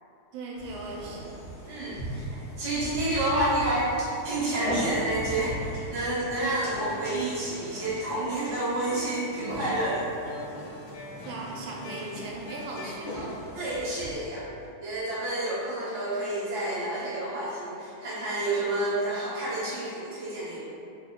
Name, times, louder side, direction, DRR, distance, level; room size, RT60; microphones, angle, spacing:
voice 1, 0.3-1.4 11.2-13.4, right 2 dB, 80° right, -3 dB, 1.3 m, -38 dB
sound 1, 0.5-14.1, equal, 65° left, 0.6 m, -38 dB
voice 2, 1.6-2.2 2.6-10.0 13.5-14.5 14.8-20.6, right 1 dB, 25° right, -12 dB, 0.7 m, -29 dB
sound 2, 6.5-13.2, left 1 dB, 85° left, 1.4 m, -44 dB
3.3 x 2.1 x 3.8 m, 2.6 s
omnidirectional pair, 2.2 m